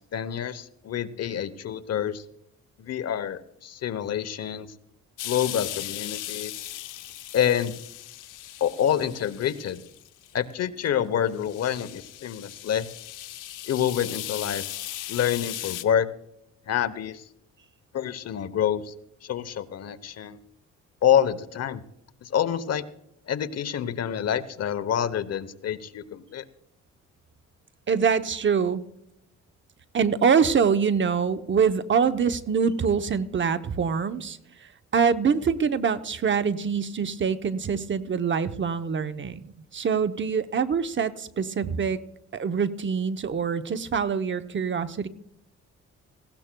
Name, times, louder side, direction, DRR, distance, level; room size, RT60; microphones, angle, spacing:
voice 1, 0.1-2.2 2.8-4.7 5.2-6.5 7.3-7.8 8.6-9.8 10.3-12.9 13.7-14.6 15.1-16.1 16.7-17.2 17.9-18.9 19.2-20.4 21.0-21.8 22.2-22.8 23.3-26.4, left 9 dB, 55° left, 14 dB, 0.9 m, -27 dB
sound 1, 5.2-10.4 10.8-10.9 11.3-15.8, left 14 dB, 90° left, 0.8 m, -37 dB
voice 2, 27.9-28.8 29.9-42.0 42.3-45.1, right 6 dB, 40° right, 10 dB, 0.8 m, -25 dB
19.0 x 16.5 x 2.3 m, 0.78 s
cardioid pair, 90°, 30 cm